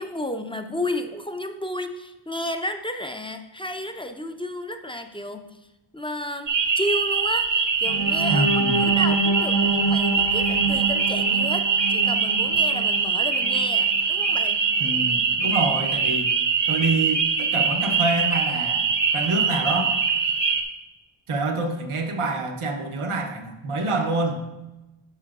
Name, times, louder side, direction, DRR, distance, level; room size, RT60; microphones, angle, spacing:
voice 1, 0.0-5.6 5.9-14.6, left 1 dB, 10° left, 6 dB, 0.5 m, -32 dB
sound 1, 6.5-20.6, right 5 dB, 60° right, 0.9 m, -23 dB
sound 2, 7.8-13.8 14.3-14.4 14.8-15.0, right 3 dB, 60° left, 1.0 m, -27 dB
voice 2, 8.3-8.8 14.8-16.3 16.7-19.9 21.3-24.4, right 3 dB, 90° right, 4 dB, 0.9 m, -26 dB
9.9 x 5.8 x 2.4 m, 0.98 s
wide cardioid pair, 70°, 48 cm